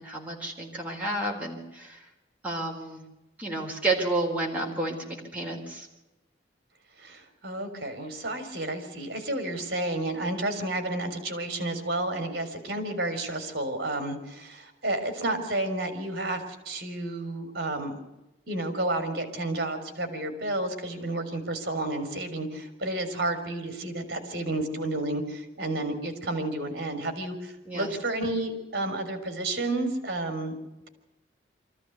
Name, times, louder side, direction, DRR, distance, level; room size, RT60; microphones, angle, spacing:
voice 1, 0.0-2.1 2.4-3.0 3.4-5.9 27.7-27.9, right 2 dB, 10° right, -3 dB, 4.1 m, -31 dB
voice 2, 7.0-18.0 18.5-30.5, right 2 dB, 55° right, 8 dB, 3.9 m, -31 dB
24.5 x 14.5 x 8.1 m, 1.0 s
head